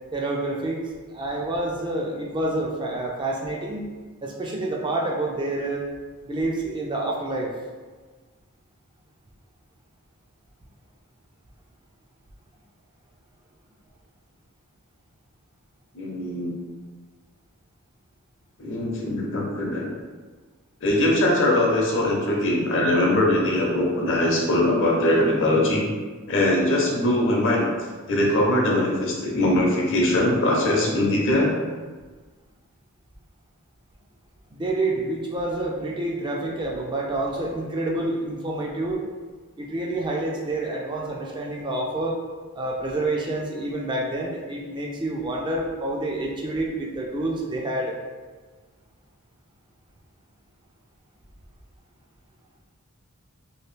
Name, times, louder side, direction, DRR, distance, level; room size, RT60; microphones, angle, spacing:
voice 1, 0.1-3.8 4.2-5.8 6.3-7.5 34.5-39.1 39.6-42.2 42.5-47.9, right 2 dB, 20° right, -1 dB, 0.3 m, -28 dB
voice 2, 15.9-16.5 18.6-19.9 20.8-25.8 26.3-27.6 28.1-31.5, left 1 dB, 60° left, -2 dB, 0.7 m, -21 dB
2.9 x 2.6 x 3.2 m, 1.4 s
head